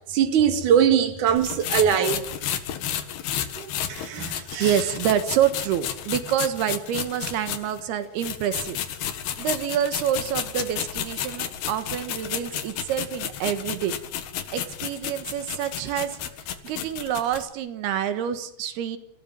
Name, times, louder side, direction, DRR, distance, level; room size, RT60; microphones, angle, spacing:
voice 1, 0.1-2.2 3.6-4.7, right 8 dB, 55° right, 3.3 m, -22 dB
sound 1, 1.4-7.8 8.2-17.4, left 10 dB, 85° left, 3.6 m, -32 dB
voice 2, 4.3-8.8 9.4-13.9 14.5-16.2 16.6-19.0, right 10 dB, 90° right, 3.4 m, -27 dB
29.5 x 15.0 x 7.5 m
omnidirectional pair, 4.4 m